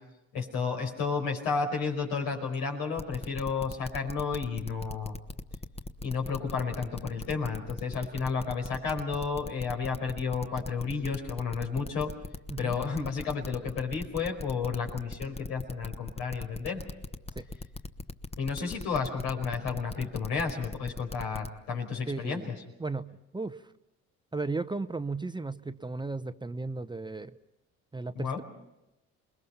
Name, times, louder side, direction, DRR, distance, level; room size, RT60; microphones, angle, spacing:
voice 1, 0.3-5.2 6.0-12.1 12.6-16.8 18.4-22.5 28.1-28.4, left 5 dB, 85° left, 2 dB, 5.1 m, -32 dB
sound 1, 3.0-21.5, left 2 dB, 20° left, 1.2 m, -39 dB
voice 2, 22.1-22.5 22.8-23.7 24.3-27.3 27.9-28.4, right 3 dB, 15° right, 11 dB, 0.8 m, -35 dB
28.5 x 21.0 x 5.6 m, 0.90 s
supercardioid pair, 75°, 33 cm